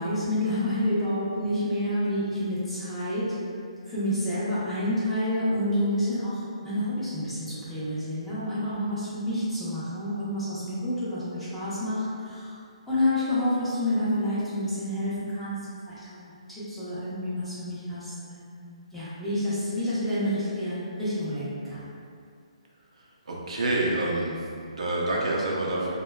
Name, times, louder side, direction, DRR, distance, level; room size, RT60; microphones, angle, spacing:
voice 1, 0.0-3.3 3.9-12.6 12.9-16.3 16.7-21.9, left 1 dB, ahead, -13 dB, 0.6 m, -29 dB
voice 2, 23.3-25.9, right 2 dB, 75° right, -4 dB, 0.5 m, -27 dB
2.6 x 2.1 x 2.2 m, 2.4 s
hypercardioid pair, 150°, 3 cm